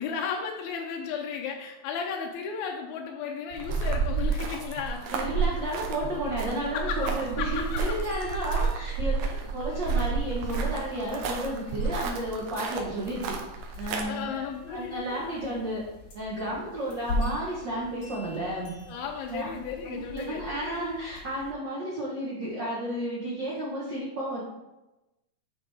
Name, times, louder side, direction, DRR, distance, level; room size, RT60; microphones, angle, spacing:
voice 1, 0.0-5.0 5.6-5.7 6.7-7.8 8.3-8.5 9.2-9.4 13.9-15.2 18.8-20.8, left 6 dB, 80° left, 1 dB, 1.7 m, -35 dB
sound 1, 3.5-14.0, right 5 dB, 75° right, 2.0 m, -30 dB
voice 2, 5.1-9.2 9.5-13.4 13.8-15.8 16.1-18.7 19.3-19.5 19.8-24.4, right 1 dB, 90° right, -5 dB, 0.9 m, -32 dB
sound 2, 7.4-21.5, left 1 dB, 55° left, 1.4 m, -41 dB
9.9 x 3.7 x 3.4 m, 0.99 s
omnidirectional pair, 4.0 m